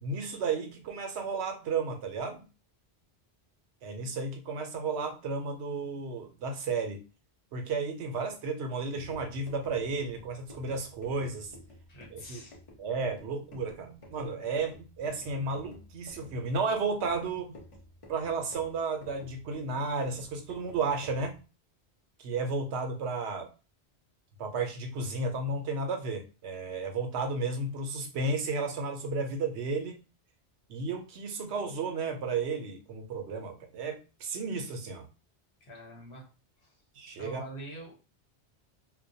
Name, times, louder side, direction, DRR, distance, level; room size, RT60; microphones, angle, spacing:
voice 1, 0.0-2.4 3.8-7.0 7.5-11.5 12.1-12.4 12.8-17.6 18.1-21.4 22.2-23.5 24.4-29.9 30.7-35.1 37.0-37.4, right 4 dB, 80° right, 5 dB, 0.9 m, -33 dB
sound 1, 8.8-21.4, left 1 dB, 40° left, 0.6 m, -52 dB
voice 2, 11.9-12.6 35.6-36.3 36.6-36.8 37.2-38.0, right 1 dB, 75° left, -1 dB, 1.2 m, -45 dB
2.2 x 2.1 x 2.6 m, 0.32 s
omnidirectional pair, 1.1 m